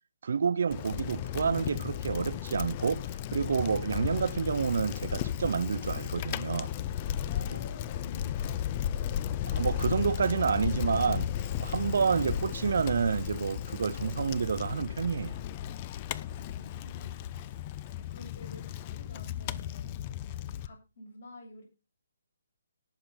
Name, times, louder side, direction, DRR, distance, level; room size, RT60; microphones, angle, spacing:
voice 1, 0.2-6.7 9.4-11.3 11.6-15.4, right 6 dB, 55° right, 0.5 m, -29 dB
Bicycle, 0.7-20.7, left 10 dB, 30° left, 0.7 m, -35 dB
voice 2, 7.3-9.4 11.9-12.3 16.3-19.9 20.4-21.6, left 1 dB, 50° left, 7.0 m, -50 dB
18.5 x 7.1 x 4.0 m
figure-of-eight pair, 140°, 0 cm